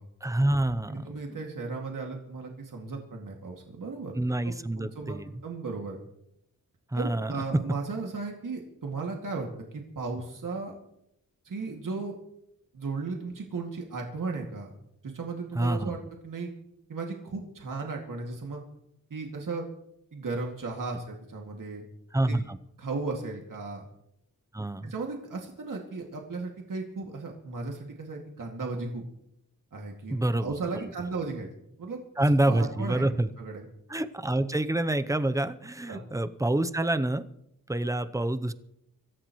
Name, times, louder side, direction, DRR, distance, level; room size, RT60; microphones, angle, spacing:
voice 1, 0.2-1.4 4.1-5.3 6.9-7.4 15.5-15.9 22.1-22.6 24.5-24.9 30.1-30.5 32.2-33.3 33.9-37.3 37.7-38.5, right 1 dB, 10° right, 11 dB, 0.8 m, -27 dB
voice 2, 0.9-4.1 4.4-6.0 6.9-10.7 11.4-12.2 12.7-14.7 15.0-16.5 16.9-18.6 19.1-19.6 20.1-21.8 22.3-22.4 22.8-23.9 24.8-29.0 29.7-31.5 31.8-32.0 32.5-33.0 33.4-33.7 35.9-36.0, right 4 dB, 70° right, 0 dB, 2.4 m, -35 dB
25.5 x 14.5 x 3.2 m, 0.79 s
wide cardioid pair, 90°, 34 cm